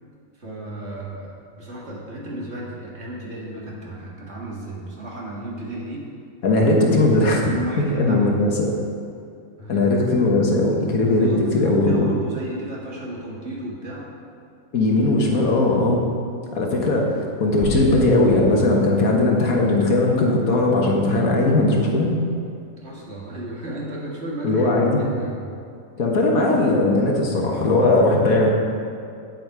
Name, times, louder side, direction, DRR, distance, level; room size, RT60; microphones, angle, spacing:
voice 1, 0.4-6.1 7.4-8.4 9.6-9.9 11.2-14.1 22.8-25.4, right 1 dB, 50° right, -4 dB, 2.0 m, -34 dB
voice 2, 6.4-7.6 7.9-8.5 9.7-12.1 14.7-16.0 16.5-22.1 24.4-25.0 26.0-28.5, left 2 dB, 75° left, 0 dB, 1.7 m, -19 dB
sound 1, 17.6-20.1, equal, 35° left, 1.7 m, -33 dB
9.1 x 7.8 x 4.8 m, 2.4 s
omnidirectional pair, 1.5 m